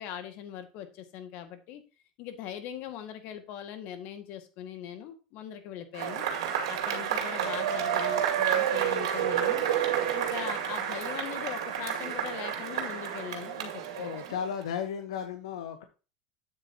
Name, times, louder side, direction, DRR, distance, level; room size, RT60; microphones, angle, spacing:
voice 1, 0.0-1.8 2.2-6.2 6.7-9.7 10.1-14.4, left 10 dB, 60° left, 8 dB, 1.9 m, -40 dB
Cheering / Applause / Crowd, 5.9-14.6, right 9 dB, 90° right, 2.2 m, -30 dB
voice 2, 14.0-15.8, left 7 dB, 90° left, 7 dB, 1.0 m, -34 dB
8.8 x 8.1 x 2.9 m, 0.33 s
supercardioid pair, 110°, 3 cm